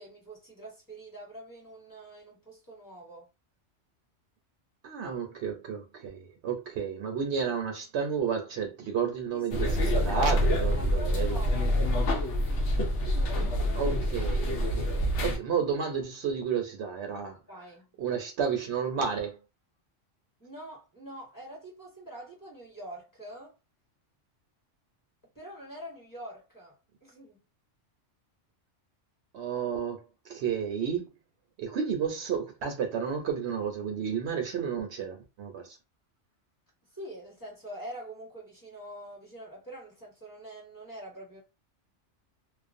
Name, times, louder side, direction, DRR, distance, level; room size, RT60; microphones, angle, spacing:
voice 1, 0.0-3.3 9.3-9.8 10.1-11.7 17.5-17.9 20.4-23.5 25.3-27.4 36.8-41.4, right 1 dB, 15° left, 1.1 m, -45 dB
voice 2, 4.8-11.4 13.7-17.4 18.0-19.4 29.3-31.1 31.6-35.8, right 6 dB, 70° right, 0.8 m, -32 dB
sound 1, 9.5-15.4, equal, 75° left, 1.0 m, -26 dB
2.4 x 2.1 x 2.5 m
omnidirectional pair, 1.3 m